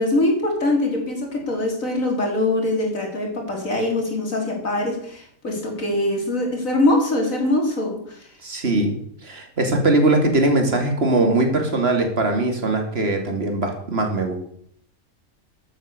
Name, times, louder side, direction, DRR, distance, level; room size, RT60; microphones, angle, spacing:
voice 1, 0.0-8.2, left 1 dB, 65° left, 0 dB, 4.1 m, -23 dB
voice 2, 8.4-9.0 9.2-14.4, right 2 dB, 45° right, 4 dB, 2.8 m, -20 dB
14.0 x 8.6 x 6.8 m, 0.65 s
omnidirectional pair, 1.5 m